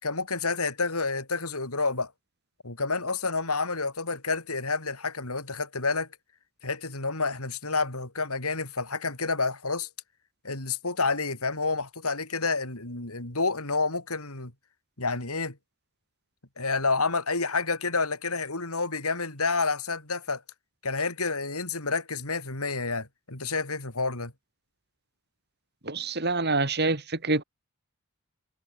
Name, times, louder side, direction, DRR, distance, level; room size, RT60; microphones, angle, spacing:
voice 1, 0.0-2.1 2.6-6.1 6.6-9.9 10.4-14.5 15.0-15.6 16.6-20.4 20.8-24.3, left 4 dB, 85° left, 5.1 m, -29 dB
voice 2, 25.8-27.4, right 3 dB, 50° right, 3.6 m, -26 dB
head